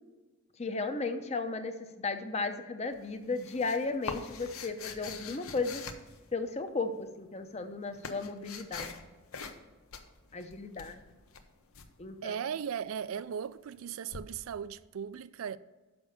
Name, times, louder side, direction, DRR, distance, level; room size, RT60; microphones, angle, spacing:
voice 1, 0.6-5.8 6.3-9.1 10.3-11.0 12.0-12.4, left 3 dB, 30° left, 0.7 m, -35 dB
sound 1, 2.9-6.7 7.5-9.0 9.3-9.6 9.9-11.9 14.1-14.2, left 5 dB, 85° left, 0.8 m, -44 dB
voice 2, 12.2-15.6, right 8 dB, 75° right, 0.3 m, -37 dB
6.9 x 5.3 x 6.9 m
head